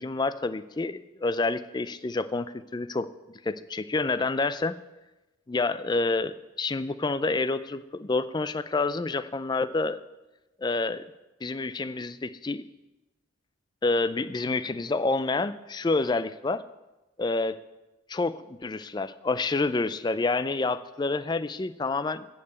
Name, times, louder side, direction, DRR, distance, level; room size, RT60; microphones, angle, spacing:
voice 1, 0.0-3.1 3.4-4.8 5.5-10.0 10.6-11.0 11.4-12.6 13.8-16.6 17.2-17.6 18.1-22.3, left 3 dB, 20° left, 15 dB, 0.3 m, -28 dB
13.5 x 5.5 x 8.1 m, 1.0 s
head